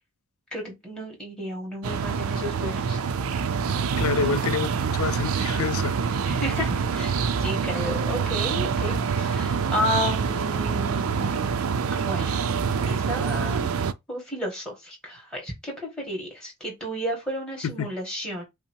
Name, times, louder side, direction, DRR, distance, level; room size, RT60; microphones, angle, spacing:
voice 1, 0.5-3.0 6.3-12.3 12.8-13.7 14.1-18.4, equal, 5° left, 1.9 m, -32 dB
sound 1, 1.8-13.9, right 6 dB, 80° right, 0.4 m, -26 dB
voice 2, 4.0-4.7 4.9-5.9 17.6-17.9, left 6 dB, 80° left, 0.4 m, -27 dB
5.8 x 2.0 x 4.5 m
head